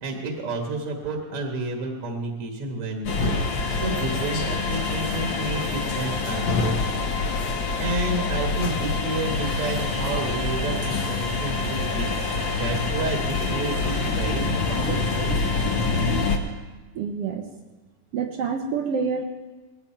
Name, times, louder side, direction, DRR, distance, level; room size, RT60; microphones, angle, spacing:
voice 1, 0.0-15.4, right 2 dB, 55° right, 2 dB, 2.2 m, -31 dB
sound 1, 3.0-16.4, left 3 dB, 55° left, 1.5 m, -26 dB
voice 2, 16.9-17.5 18.1-19.2, right 5 dB, 70° right, 5 dB, 1.5 m, -27 dB
20.0 x 16.0 x 4.5 m, 1.2 s
omnidirectional pair, 3.6 m